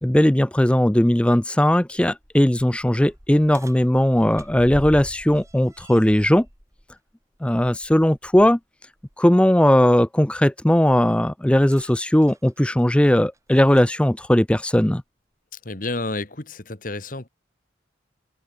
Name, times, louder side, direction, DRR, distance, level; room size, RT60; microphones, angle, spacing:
voice 1, 0.0-6.5 7.4-8.6 9.2-15.0, left 1 dB, 5° left, 0.4 m, -18 dB
sound 1, 1.9-8.5 9.0-9.1 11.6-14.0 15.0-15.1 15.9-16.0, equal, 15° right, 7.4 m, -43 dB
voice 2, 15.5-17.3, left 2 dB, 45° left, 1.7 m, -30 dB
head